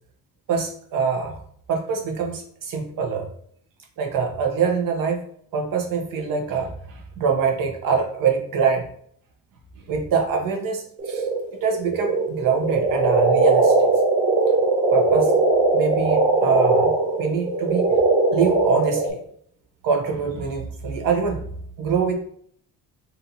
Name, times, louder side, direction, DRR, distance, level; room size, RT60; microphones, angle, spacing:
voice 1, 0.5-1.4 1.7-3.3 4.0-5.2 5.5-8.9 9.9-11.3 11.6-13.9 14.9-15.4 15.7-17.9 18.3-19.2 19.8-21.4 21.8-22.1, right 5 dB, 70° right, 3 dB, 0.9 m, -24 dB
sound 1, 11.0-19.1, right 3 dB, 20° right, 0.8 m, -20 dB
4.1 x 2.7 x 2.7 m, 0.62 s
cardioid pair, 130°, 35 cm